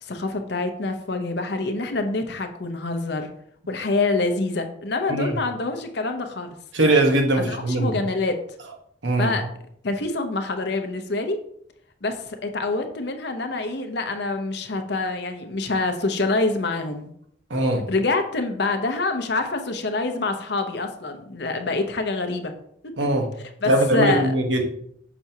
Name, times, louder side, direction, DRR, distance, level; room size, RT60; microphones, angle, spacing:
voice 1, 0.0-3.3 3.7-6.5 7.3-8.4 9.2-9.4 9.8-11.4 12.0-17.1 17.9-22.5 22.8-22.9 23.4-24.3, left 3 dB, 60° left, 6 dB, 0.7 m, -26 dB
voice 2, 5.1-5.4 6.7-8.0 9.0-9.3 17.5-17.9 23.0-23.3 23.6-24.6, right 1 dB, 75° right, 3 dB, 1.1 m, -21 dB
6.0 x 5.9 x 2.8 m, 0.69 s
head